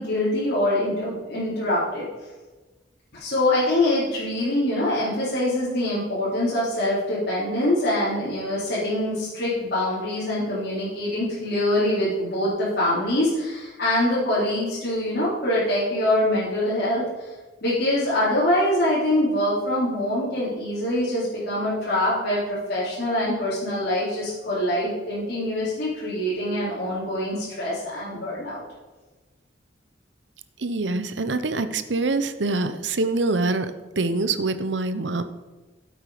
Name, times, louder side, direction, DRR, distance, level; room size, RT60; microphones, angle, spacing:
voice 1, 0.0-2.1 3.1-17.0 17.6-28.6, left 1 dB, 60° left, -10 dB, 4.1 m, -24 dB
voice 2, 30.6-33.7 34.0-35.2, right 3 dB, 70° right, 11 dB, 0.8 m, -25 dB
13.0 x 8.0 x 5.1 m, 1.2 s
head